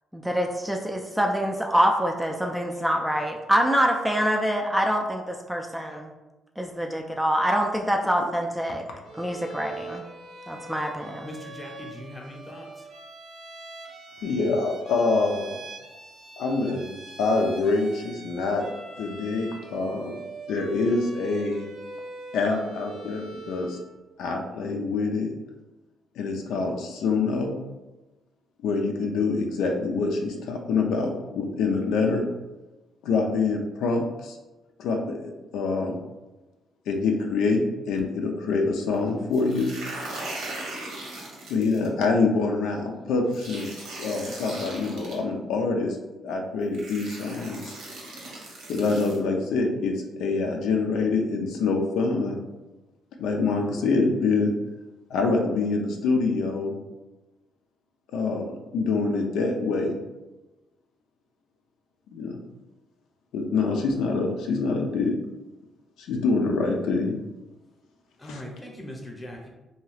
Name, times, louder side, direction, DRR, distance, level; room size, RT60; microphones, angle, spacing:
voice 1, 0.1-6.1 6.6-8.8 9.1-10.0 10.5-11.3, equal, 5° right, 2 dB, 0.3 m, -25 dB
Bowed string instrument, 9.0-23.9, right 3 dB, 70° right, 0.5 m, -43 dB
voice 2, 11.2-12.9 68.2-69.5, equal, 15° left, -1 dB, 0.7 m, -40 dB
voice 3, 14.2-15.6 16.4-18.6 19.0-20.1 20.5-21.7 22.3-23.8 24.2-25.3 26.2-27.5 28.6-32.3 33.0-34.4 34.8-36.0 36.9-39.7 41.5-43.7 44.0-47.7 48.7-52.4 53.2-54.5 55.1-56.8 58.1-59.9 62.1-62.4 63.3-65.2 66.0-67.2 68.2-68.4, left 3 dB, 85° left, 2 dB, 0.4 m, -25 dB
sound 1, 39.3-41.9 43.3-45.1 46.2-46.3 46.7-49.2, right 2 dB, 85° right, 0.9 m, -38 dB
2.8 x 2.3 x 3.1 m, 1.1 s
cardioid pair, 90°, 0 cm